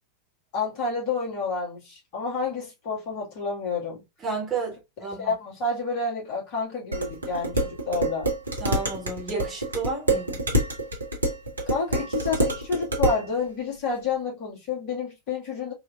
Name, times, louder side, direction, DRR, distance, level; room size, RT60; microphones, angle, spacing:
voice 1, 0.5-4.0 5.2-8.3 11.7-15.7, left 4 dB, 45° left, 1.8 m, -29 dB
voice 2, 4.2-5.3 8.6-10.4, right 4 dB, 25° right, 1.6 m, -31 dB
Dishes pots and pans, 6.9-13.3, right 1 dB, 75° right, 0.9 m, -27 dB
3.7 x 2.8 x 2.3 m
figure-of-eight pair, 90°, 0 cm